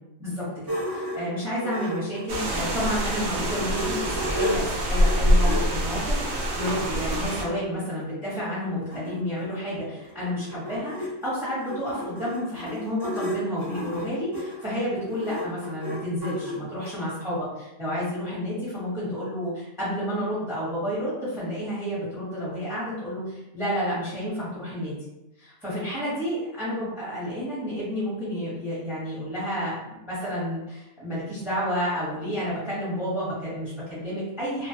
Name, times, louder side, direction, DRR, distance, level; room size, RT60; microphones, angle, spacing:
voice 1, 0.2-25.0 25.4-34.7, equal, ahead, -9 dB, 0.9 m, -30 dB
sound 1, 0.7-3.0 3.4-7.2 8.0-8.1 8.4-8.5 8.7-16.9, equal, 30° right, 0.4 m, -34 dB
sound 2, 2.3-7.4, equal, 65° right, 0.7 m, -25 dB
2.4 x 2.3 x 2.7 m, 0.93 s
omnidirectional pair, 1.4 m